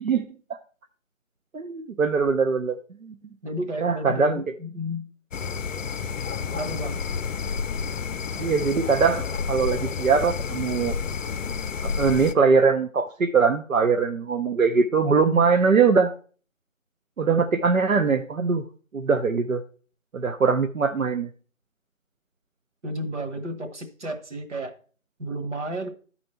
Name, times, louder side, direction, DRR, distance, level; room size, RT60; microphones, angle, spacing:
voice 1, 1.5-3.1 3.8-4.4 8.4-10.9 11.8-16.1 17.2-18.6 18.9-19.6 20.1-21.3, right 5 dB, 85° right, 6 dB, 0.8 m, -22 dB
voice 2, 3.4-5.1 6.5-7.0 22.8-24.7 25.2-25.9, equal, 60° right, 5 dB, 1.6 m, -32 dB
sound 1, 5.3-12.3, left 6 dB, 75° left, 0.6 m, -30 dB
11.5 x 4.3 x 4.4 m, 0.41 s
figure-of-eight pair, 165°, 40 cm